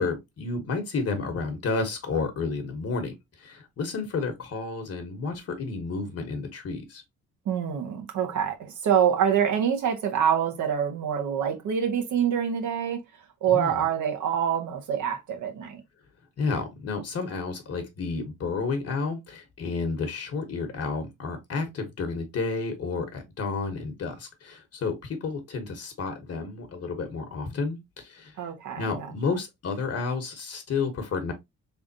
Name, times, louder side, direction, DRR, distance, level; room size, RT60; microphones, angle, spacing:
voice 1, 0.0-7.0 13.5-13.8 16.4-28.5 28.8-31.3, left 4 dB, 55° left, 1.1 m, -31 dB
voice 2, 7.4-8.6 8.8-13.0 13.4-15.8 28.4-29.1, right 8 dB, 75° right, 1.3 m, -25 dB
3.7 x 3.4 x 2.7 m
cardioid pair, 90°, 30 cm